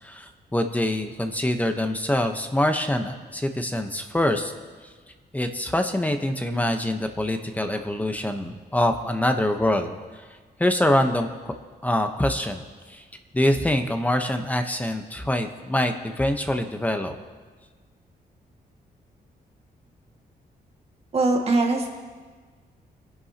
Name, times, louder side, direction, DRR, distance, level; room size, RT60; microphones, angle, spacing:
voice 1, 0.0-4.5 5.3-9.9 10.6-11.5 11.8-12.6 12.9-13.0 13.3-17.1, left 1 dB, 10° left, 6 dB, 0.9 m, -24 dB
voice 2, 21.1-21.9, right 2 dB, 40° right, 1 dB, 1.9 m, -21 dB
25.5 x 11.0 x 2.9 m, 1.4 s
wide cardioid pair, 135°, 16 cm